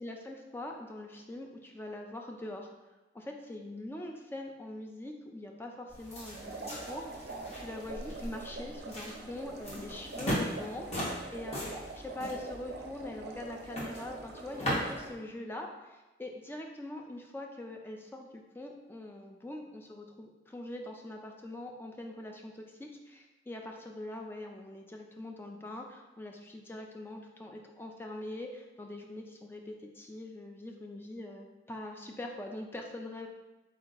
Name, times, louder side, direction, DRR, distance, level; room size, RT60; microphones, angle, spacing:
voice 1, 0.0-2.7 3.1-11.7 11.9-33.3, left 1 dB, 10° left, 2 dB, 0.4 m, -43 dB
sound 1, 5.9-15.1, equal, 35° left, 1.1 m, -39 dB
sound 2, 6.3-15.1, right 3 dB, 60° right, 0.5 m, -45 dB
4.3 x 2.8 x 3.9 m, 1.1 s
head